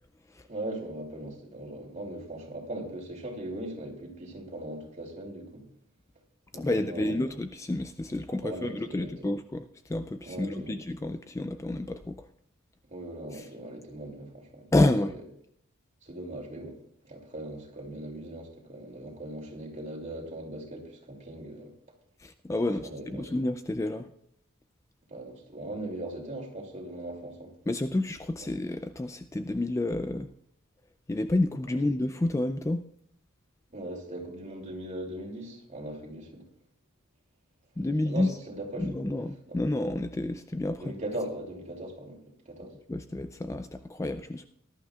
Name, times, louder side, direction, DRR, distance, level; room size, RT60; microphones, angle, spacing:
voice 1, 0.5-5.6 6.5-7.2 8.4-9.1 10.2-10.8 12.9-14.7 16.0-16.7 17.0-21.7 22.6-23.3 25.1-27.5 33.7-36.5 38.0-39.0 39.5-39.6 40.8-42.8, right 1 dB, 35° right, 0 dB, 2.7 m, -39 dB
voice 2, 6.5-12.3 13.3-13.5 14.7-15.2 22.2-24.1 27.7-30.3 31.1-32.9 37.8-38.3 38.8-40.9 42.9-44.5, left 2 dB, 15° left, 9 dB, 0.3 m, -29 dB
19.5 x 11.5 x 2.4 m, 0.69 s
head